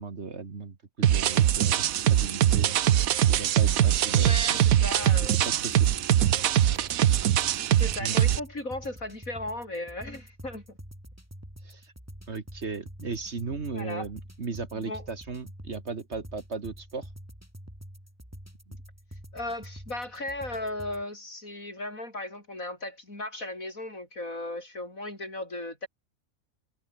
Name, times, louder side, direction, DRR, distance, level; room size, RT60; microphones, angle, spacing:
voice 1, 0.0-2.8 3.3-4.7 5.4-5.9 8.0-8.2 11.6-11.9 12.3-17.1 18.7-18.8, right 4 dB, 50° right, 2.1 m, -37 dB
sound 1, 1.0-8.4, right 11 dB, 75° right, 1.2 m, -22 dB
voice 2, 4.2-5.4 7.8-10.8 13.7-14.0 14.7-15.0 19.3-25.9, left 2 dB, 70° left, 7.6 m, -36 dB
sound 2, 5.0-21.0, equal, 10° right, 7.4 m, -47 dB
omnidirectional pair, 1.5 m